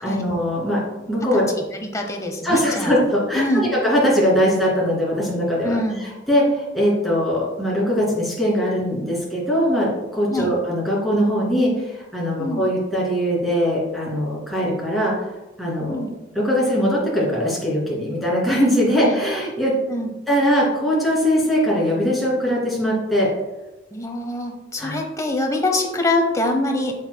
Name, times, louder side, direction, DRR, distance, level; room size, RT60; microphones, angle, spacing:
voice 1, 0.0-1.4 2.4-15.3 15.6-16.0 16.3-19.7 20.3-23.3 24.8-25.0, equal, ahead, -6 dB, 2.4 m, -21 dB
voice 2, 1.8-2.9 3.3-3.6 5.6-6.0 10.3-10.5 12.4-12.7 15.9-16.1 19.0-19.1 19.9-20.1 23.9-26.9, left 1 dB, 20° left, 3 dB, 0.9 m, -24 dB
7.8 x 7.3 x 2.2 m, 1.0 s
head